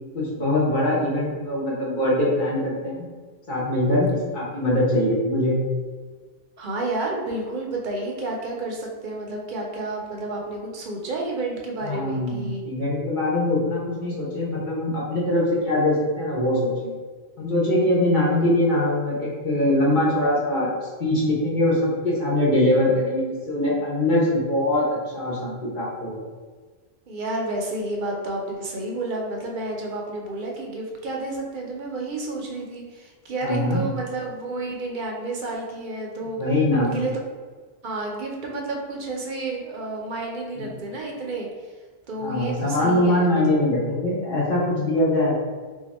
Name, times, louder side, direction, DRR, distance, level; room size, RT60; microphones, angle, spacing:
voice 1, 0.1-3.1 3.5-5.6 11.8-16.9 17.4-20.7 21.0-26.2 33.4-33.8 36.4-36.9 40.6-40.7 42.2-45.3, left 1 dB, 50° left, -7 dB, 1.1 m, -22 dB
voice 2, 6.6-12.6 27.1-36.4 36.7-37.1 37.8-41.5 42.1-43.6, right 2 dB, 55° right, -1 dB, 0.8 m, -30 dB
2.8 x 2.4 x 4.1 m, 1.4 s
omnidirectional pair, 1.1 m